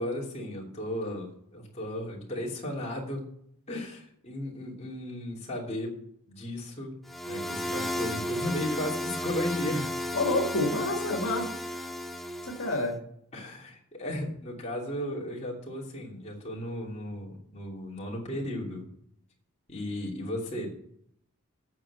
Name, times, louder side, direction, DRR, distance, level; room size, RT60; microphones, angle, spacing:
voice 1, 0.0-3.2 3.7-5.9 6.3-6.9 7.3-9.9 13.3-18.8 19.7-20.7, left 1 dB, 30° left, -3 dB, 2.8 m, -35 dB
sound 1, 7.1-12.9, equal, ahead, 0.7 m, -34 dB
voice 2, 10.1-11.5 12.4-13.0, left 2 dB, 70° left, 1 dB, 1.9 m, -28 dB
8.8 x 6.6 x 8.1 m, 0.68 s
head